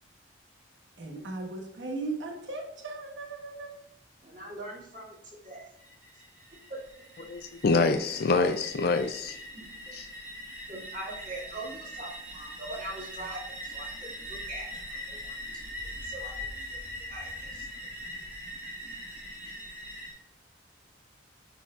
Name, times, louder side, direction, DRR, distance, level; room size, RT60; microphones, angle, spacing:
voice 1, 1.0-3.7, right 3 dB, 65° right, 1.2 m, -37 dB
voice 2, 4.2-5.7 6.7-6.8 9.5-9.9 10.7-17.7, right 1 dB, 40° right, 2.4 m, -43 dB
sound 1, 5.8-20.1, equal, 10° right, 1.9 m, -42 dB
voice 3, 7.3-9.4 9.9-10.1, left 3 dB, 50° left, 0.4 m, -26 dB
9.0 x 4.4 x 2.5 m
head